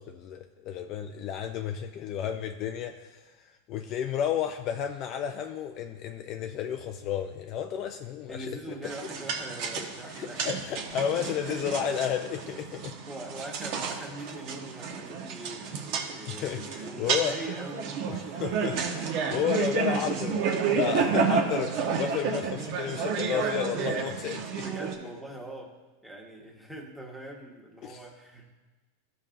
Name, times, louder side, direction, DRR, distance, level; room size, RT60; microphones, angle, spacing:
voice 1, 0.0-8.7 10.2-13.0 15.7-15.8 16.3-17.4 18.1-24.6 27.8-28.0, left 9 dB, 40° left, 6 dB, 0.4 m, -32 dB
voice 2, 8.3-10.5 11.0-11.8 13.1-17.9 24.6-25.7 26.0-28.5, right 1 dB, 5° right, -1 dB, 1.3 m, -42 dB
sound 1, 8.8-25.0, right 6 dB, 50° right, 1.1 m, -31 dB
13.5 x 5.4 x 2.6 m, 1.2 s
supercardioid pair, 140°, 0 cm